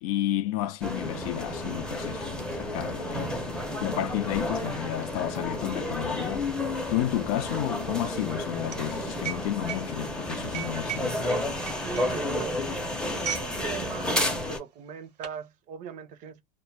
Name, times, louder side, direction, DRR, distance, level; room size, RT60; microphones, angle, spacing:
voice 1, 0.0-6.5 6.9-11.2, left 13 dB, 60° left, 0.4 m, -31 dB
sound 1, 0.8-14.6, left 1 dB, 5° left, 0.6 m, -31 dB
sound 2, 4.3-13.6 13.9-14.1 14.8-15.4, right 9 dB, 90° right, 0.8 m, -40 dB
voice 2, 11.8-12.6 13.0-16.4, right 8 dB, 40° right, 0.5 m, -40 dB
2.2 x 2.0 x 3.2 m
hypercardioid pair, 105°, 20 cm